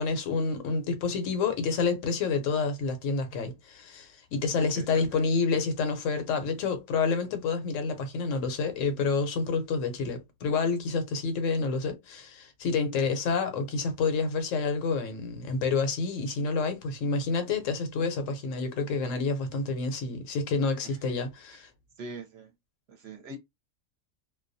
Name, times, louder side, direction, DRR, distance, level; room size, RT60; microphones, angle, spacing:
voice 1, 0.0-21.7, left 4 dB, 75° left, 1.0 m, -28 dB
voice 2, 4.6-5.3 20.8-21.0 22.0-22.5 22.9-23.4, right 2 dB, 60° right, 0.8 m, -42 dB
2.3 x 2.1 x 2.5 m
omnidirectional pair, 1.3 m